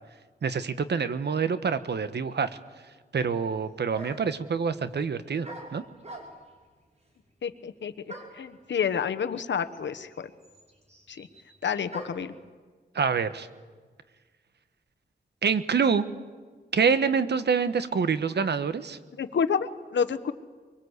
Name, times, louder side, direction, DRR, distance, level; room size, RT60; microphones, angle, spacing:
voice 1, 0.4-2.5 3.1-5.8 12.9-13.5 15.4-16.0 16.7-19.0, right 6 dB, 70° right, 12 dB, 1.3 m, -26 dB
sound 1, 3.9-4.4 5.4-6.6 8.1-8.5 9.4-9.5 9.7-12.3, right 1 dB, 35° right, 5.9 m, -44 dB
voice 2, 7.4-10.3 11.1-11.3 11.6-12.3 19.1-20.3, left 7 dB, 90° left, 10 dB, 1.1 m, -29 dB
24.5 x 23.0 x 8.2 m, 1.5 s
wide cardioid pair, 90°, 18 cm